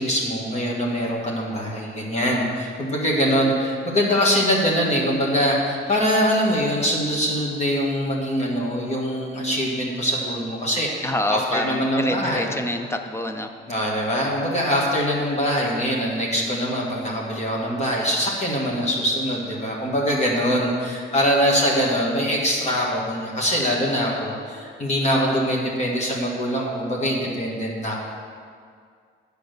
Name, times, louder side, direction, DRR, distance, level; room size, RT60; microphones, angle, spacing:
voice 1, 0.0-10.9 11.3-12.5 13.7-27.9, equal, 30° left, -3 dB, 1.5 m, -23 dB
voice 2, 11.0-13.5, left 1 dB, 10° left, 6 dB, 0.6 m, -26 dB
8.4 x 5.2 x 6.7 m, 2.1 s
cardioid pair, 105°, 21 cm